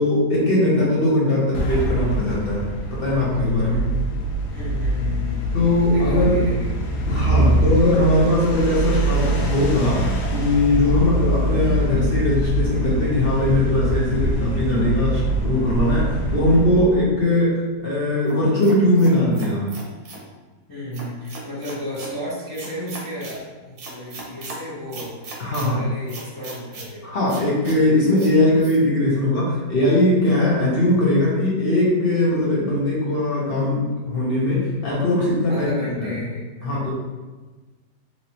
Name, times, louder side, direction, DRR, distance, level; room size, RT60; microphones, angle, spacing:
voice 1, 0.0-2.6 2.9-3.8 5.5-6.4 7.1-19.7 25.4-25.8 27.0-35.7 36.0-36.1 36.6-36.9, left 1 dB, 45° left, -5 dB, 0.9 m, -20 dB
sound 1, 1.5-17.0, right 1 dB, 90° left, 1.2 m, -24 dB
voice 2, 3.6-4.1 4.5-5.4 5.9-6.8 20.7-27.2 35.5-36.8, equal, 20° left, -11 dB, 0.6 m, -33 dB
sound 2, 18.3-20.3 20.9-22.1 22.5-23.4 23.8-24.6 24.9-25.7 26.1-26.9 27.3-27.8 28.2-28.3 28.6-28.8, right 3 dB, 70° right, 1.1 m, -38 dB
3.1 x 2.9 x 2.8 m, 1.3 s
omnidirectional pair, 1.7 m